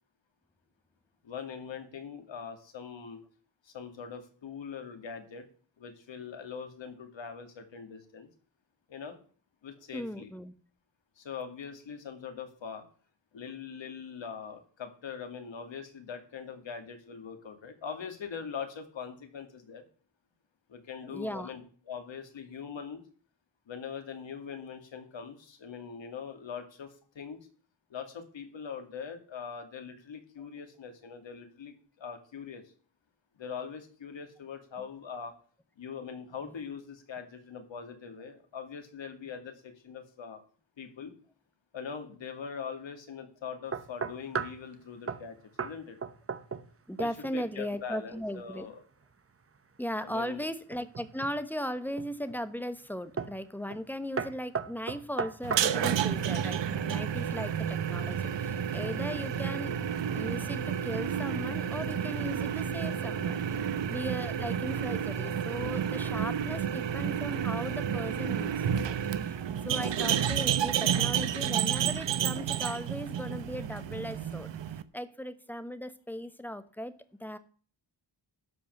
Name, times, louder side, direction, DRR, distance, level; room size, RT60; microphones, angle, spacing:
voice 1, 1.2-3.2 3.6-5.5 5.8-8.3 8.9-9.2 9.6-10.3 11.2-12.8 13.3-19.8 20.7-21.6 21.9-23.0 23.7-27.4 27.9-32.6 33.4-35.3 35.8-40.4 40.8-41.1 41.7-46.0 47.0-48.8 50.0-50.5, left 6 dB, 85° left, 6 dB, 2.5 m, -42 dB
voice 2, 9.9-10.5 21.1-21.5 46.9-48.7 49.8-59.8 60.1-68.6 69.2-74.5 74.9-76.9 77.2-77.4, equal, 5° left, 12 dB, 1.1 m, -38 dB
sound 1, 43.7-44.6 45.1-45.3 45.6-45.8 46.0-46.7 47.0-47.4 50.7-51.4 52.0-52.4 53.2-53.4 53.7-53.9 54.2-56.0, right 5 dB, 30° right, 0.9 m, -35 dB
sound 2, 55.4-74.8, right 8 dB, 75° right, 0.9 m, -31 dB
12.5 x 5.3 x 7.9 m, 0.43 s
wide cardioid pair, 110°, 44 cm